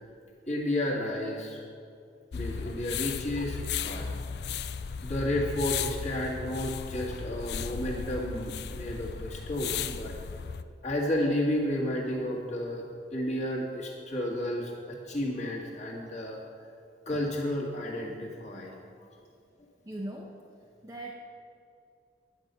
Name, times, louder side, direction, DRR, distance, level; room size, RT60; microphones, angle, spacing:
voice 1, 0.5-1.6 2.3-3.6 3.8-4.1 5.0-10.1 10.8-12.8 13.1-16.4 17.1-18.8, left 1 dB, 40° left, -3 dB, 1.9 m, -32 dB
sound 1, 2.3-10.6, left 6 dB, 65° left, 0.4 m, -35 dB
voice 2, 19.8-20.4 20.8-21.1, right 1 dB, 15° right, -2 dB, 0.7 m, -38 dB
10.5 x 5.7 x 8.2 m, 2.4 s
head